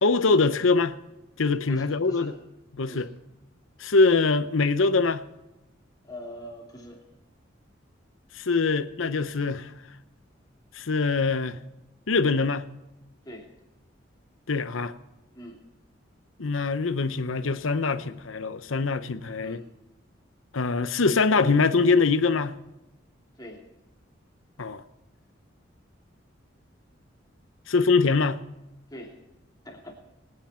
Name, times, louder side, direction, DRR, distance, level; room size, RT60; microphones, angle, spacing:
voice 1, 0.0-1.0 1.4-2.3 2.7-3.1 3.8-5.2 8.3-9.7 10.7-11.6 12.1-12.7 14.5-14.9 16.4-19.6 20.5-22.6 24.6-24.8 27.7-28.4, left 4 dB, 85° left, 0.8 m, -23 dB
voice 2, 1.7-2.3 2.9-3.1 6.0-7.0 13.2-13.5 15.3-15.6 19.4-19.7 23.4-23.6 28.9-29.1 29.6-29.9, equal, 20° left, 2.9 m, -42 dB
23.0 x 9.7 x 4.4 m
head